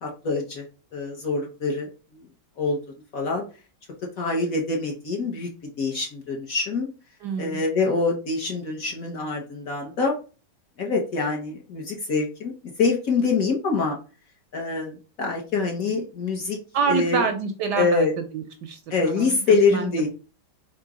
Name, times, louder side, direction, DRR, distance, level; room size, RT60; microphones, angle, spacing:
voice 1, 0.0-0.6 0.9-1.9 2.6-2.8 3.1-3.4 4.2-6.9 7.4-10.1 10.8-12.5 12.8-14.0 14.5-16.6 16.9-17.2 17.8-18.1 18.9-20.1, left 4 dB, 55° left, 0 dB, 1.0 m, -25 dB
voice 2, 7.2-7.6 16.7-18.1 18.3-19.4 19.7-20.1, right 6 dB, 75° right, 6 dB, 1.0 m, -27 dB
3.7 x 2.9 x 4.7 m, 0.35 s
omnidirectional pair, 2.2 m